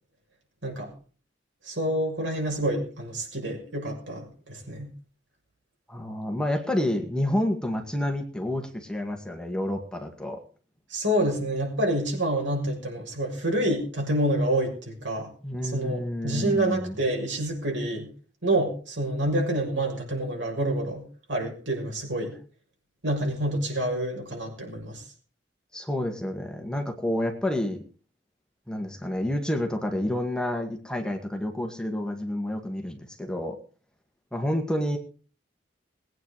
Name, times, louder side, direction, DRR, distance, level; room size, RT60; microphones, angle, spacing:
voice 1, 1.6-4.9 10.9-15.3 15.6-18.1 18.4-22.3 23.0-25.0, right 1 dB, 75° right, 1 dB, 6.6 m, -28 dB
voice 2, 5.9-10.4 15.4-17.0 25.7-27.8 28.7-33.6 34.3-35.0, left 1 dB, 5° left, 3 dB, 2.0 m, -29 dB
20.5 x 9.2 x 4.9 m, 0.40 s
head